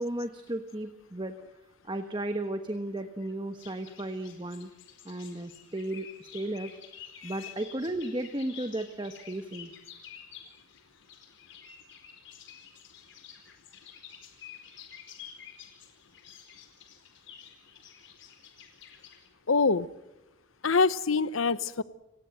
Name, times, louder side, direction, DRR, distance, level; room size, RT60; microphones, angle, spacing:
voice 1, 0.0-1.3 1.8-4.7 5.0-6.8 7.2-9.7, right 1 dB, 20° right, 7 dB, 1.2 m, -34 dB
sound 1, 3.6-19.3, left 8 dB, 60° left, 4.5 m, -50 dB
voice 2, 7.2-7.5 19.5-19.9 20.6-21.8, left 4 dB, 75° left, 16 dB, 0.9 m, -25 dB
30.0 x 18.5 x 7.8 m, 0.94 s
head